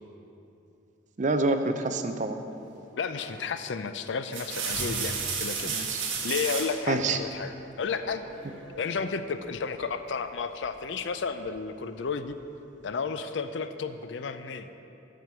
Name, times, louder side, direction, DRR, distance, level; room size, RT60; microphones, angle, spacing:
voice 1, 1.2-2.4 5.6-6.1 6.9-7.2, right 3 dB, 40° right, 7 dB, 0.4 m, -27 dB
voice 2, 3.0-5.7 6.2-7.5 7.8-8.2 8.8-12.4 12.8-14.7, left 5 dB, 65° left, 10 dB, 0.4 m, -32 dB
sound 1, 3.2-3.5 4.1-6.8 8.3-8.9, right 5 dB, 80° right, 1.2 m, -33 dB
Wild animals, 4.3-12.8, right 1 dB, 20° right, 1.1 m, -49 dB
7.6 x 6.2 x 6.8 m, 2.8 s
head